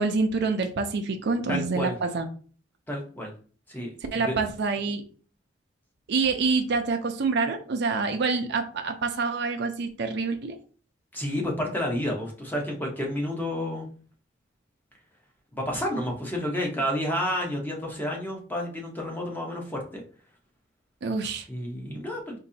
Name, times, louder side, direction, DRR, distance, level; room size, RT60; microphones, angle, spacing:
voice 1, 0.0-2.3 4.1-5.0 6.1-10.6 21.0-21.5, right 4 dB, 60° right, 6 dB, 0.5 m, -26 dB
voice 2, 1.5-1.9 2.9-3.3 3.7-4.3 11.1-13.9 15.5-20.0 21.5-22.4, left 1 dB, 10° left, 0 dB, 0.8 m, -30 dB
4.0 x 2.6 x 2.7 m, 0.41 s
head